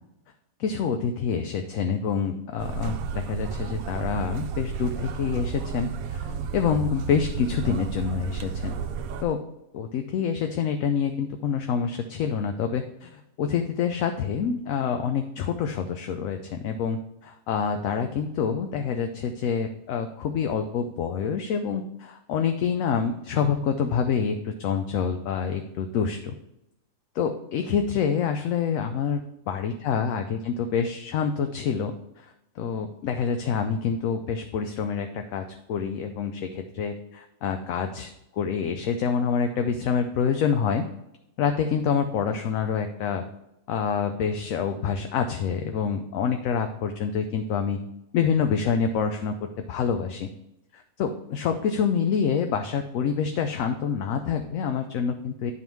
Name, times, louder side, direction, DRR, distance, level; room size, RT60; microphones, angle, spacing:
voice 1, 0.6-8.8 9.2-9.4 9.7-26.3 27.1-40.9 41.4-43.2 43.7-47.8 48.1-49.3 49.7-50.3 50.7-55.5, left 6 dB, 70° left, 6 dB, 0.9 m, -27 dB
sound 1, 2.6-9.2, right 6 dB, 75° right, 1.0 m, -32 dB
10.5 x 3.7 x 4.6 m, 0.85 s
omnidirectional pair, 1.6 m